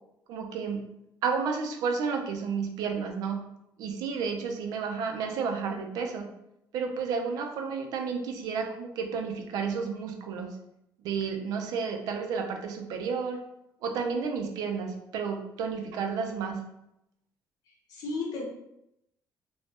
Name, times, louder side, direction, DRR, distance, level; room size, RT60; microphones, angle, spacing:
voice 1, 0.3-0.8 1.2-3.4 3.8-6.3 6.7-10.5 11.0-13.4 13.8-16.6, right 5 dB, 85° right, 4 dB, 0.4 m, -31 dB
voice 2, 17.7-18.5, left 3 dB, 80° left, 0 dB, 0.7 m, -34 dB
2.6 x 2.1 x 3.3 m, 0.83 s
cardioid pair, 155°, 6 cm